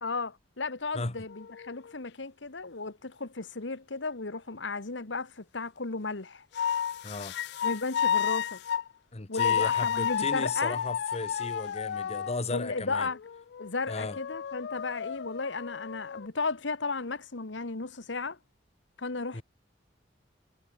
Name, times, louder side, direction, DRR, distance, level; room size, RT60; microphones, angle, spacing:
voice 1, 0.0-6.5 7.6-8.6 9.3-10.8 12.5-13.2 13.6-18.4 19.0-19.4, left 3 dB, 80° left, 1.5 m, -34 dB
sound 1, 1.3-1.9 6.5-8.9 9.3-12.4 13.0-16.3, left 8 dB, 65° left, 0.3 m, -31 dB
voice 2, 7.0-7.4 9.1-13.1 13.9-14.2 19.3-19.4, left 3 dB, 35° left, 1.2 m, -35 dB
head